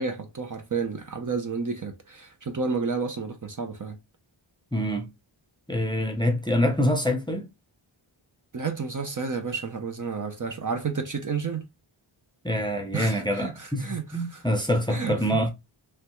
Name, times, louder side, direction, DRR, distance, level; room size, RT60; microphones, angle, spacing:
voice 1, 0.0-4.0 8.5-11.7 12.9-14.4 14.9-15.4, right 5 dB, 40° right, 0.5 m, -31 dB
voice 2, 4.7-5.1 5.7-7.5 12.4-13.9 14.1-15.5, equal, 10° left, 0.5 m, -25 dB
3.2 x 2.3 x 2.9 m
wide cardioid pair, 75°, 49 cm